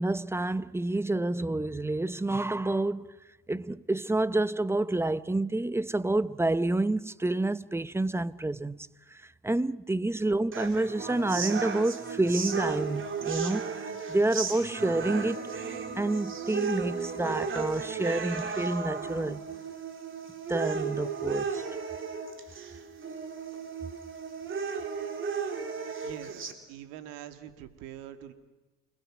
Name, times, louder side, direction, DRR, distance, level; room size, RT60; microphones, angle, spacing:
voice 1, 0.0-3.1 3.5-13.6 14.1-15.4 16.0-19.5 20.5-21.6, right 2 dB, 10° right, 0.7 m, -28 dB
sound 1, 10.5-26.5, right 5 dB, 40° right, 3.5 m, -34 dB
voice 2, 26.0-26.4 26.7-28.3, right 11 dB, 85° right, 2.1 m, -44 dB
29.5 x 21.5 x 6.2 m
supercardioid pair, 80°, 31 cm